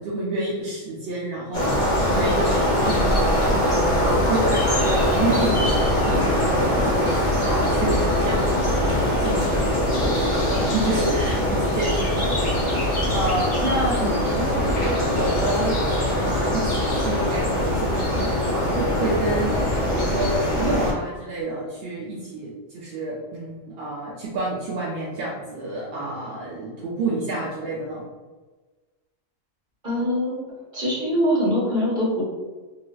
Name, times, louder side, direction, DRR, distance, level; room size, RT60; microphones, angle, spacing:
voice 1, 0.0-12.6 13.1-15.8 16.2-28.0, right 2 dB, 60° right, -6 dB, 0.6 m, -29 dB
sound 1, 1.5-20.9, left 1 dB, 30° left, 0.5 m, -22 dB
voice 2, 29.8-30.4 30.7-32.2, equal, 35° right, -8 dB, 1.4 m, -23 dB
3.2 x 2.8 x 2.3 m, 1.3 s
omnidirectional pair, 1.5 m